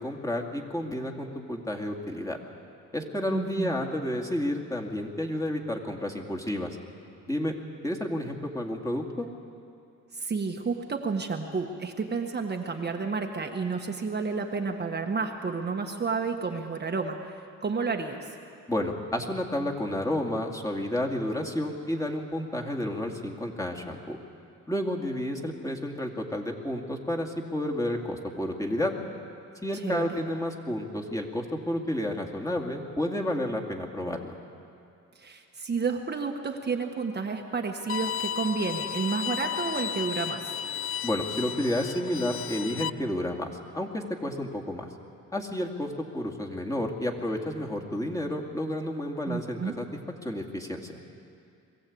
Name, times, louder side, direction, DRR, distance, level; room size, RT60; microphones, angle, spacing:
voice 1, 0.0-2.4 2.9-6.8 7.3-7.6 7.8-9.3 18.7-24.2 24.7-28.9 29.6-34.3 41.0-44.9 45.3-49.9 50.2-51.0, left 1 dB, 10° left, 0 dB, 2.4 m, -31 dB
voice 2, 3.3-3.8 10.1-18.4 29.7-30.2 35.1-40.5 49.3-49.8, right 4 dB, 35° right, 2 dB, 1.4 m, -31 dB
Bowed string instrument, 37.9-42.9, left 10 dB, 45° left, 0.5 m, -33 dB
22.5 x 15.0 x 8.6 m, 2.5 s
cardioid pair, 90°, 30 cm